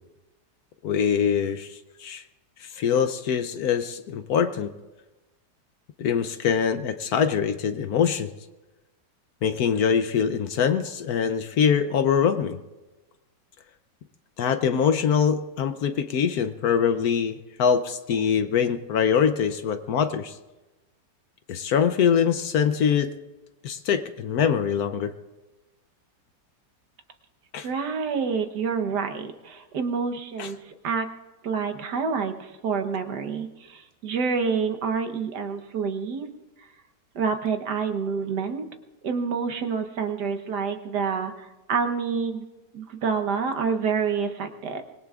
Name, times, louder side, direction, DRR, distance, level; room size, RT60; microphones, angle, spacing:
voice 1, 0.8-2.2 2.6-4.7 6.0-8.3 9.4-12.6 14.4-20.4 21.5-23.1 23.6-25.1 27.5-27.7 30.4-30.5, left 7 dB, 65° left, 10 dB, 1.1 m, -23 dB
voice 2, 27.6-31.1 31.4-36.3 36.6-36.7 37.1-38.7 39.0-42.4 42.7-44.8, right 5 dB, 70° right, 6 dB, 1.6 m, -28 dB
25.0 x 21.0 x 2.4 m, 1.1 s
omnidirectional pair, 1.9 m